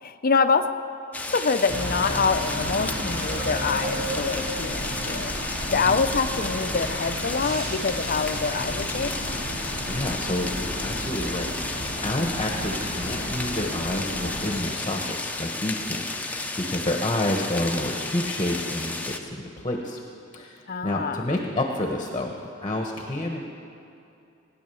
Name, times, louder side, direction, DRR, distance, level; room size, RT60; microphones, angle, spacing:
voice 1, 0.0-0.7 1.3-9.1 12.2-12.6 20.7-21.4, left 5 dB, 45° left, 9 dB, 0.6 m, -26 dB
sound 1, 1.1-19.2, left 2 dB, 10° left, 0.8 m, -33 dB
sound 2, 1.7-14.6, equal, 75° right, 3.8 m, -33 dB
voice 2, 5.7-6.0 9.8-20.0 20.3-22.4 22.6-23.4, left 1 dB, 25° left, 2 dB, 1.1 m, -29 dB
18.0 x 9.9 x 7.0 m, 2.6 s
head